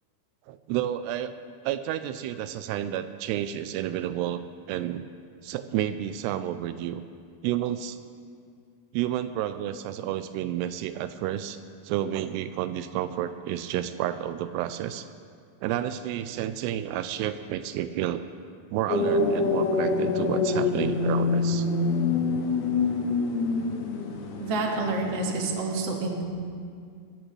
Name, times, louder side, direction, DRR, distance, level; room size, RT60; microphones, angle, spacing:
voice 1, 0.5-1.3 1.7-4.4 4.7-5.0 5.4-7.0 7.4-8.0 8.9-11.6 11.8-15.1 15.6-18.2 18.7-21.7 22.1-22.2, right 11 dB, 85° right, 11 dB, 2.6 m, -30 dB
sound 1, 18.9-25.5, left 3 dB, 75° left, 3.2 m, -26 dB
voice 2, 24.4-26.2, right 3 dB, 50° right, 0 dB, 2.1 m, -28 dB
23.0 x 14.0 x 3.2 m, 2.2 s
omnidirectional pair, 4.8 m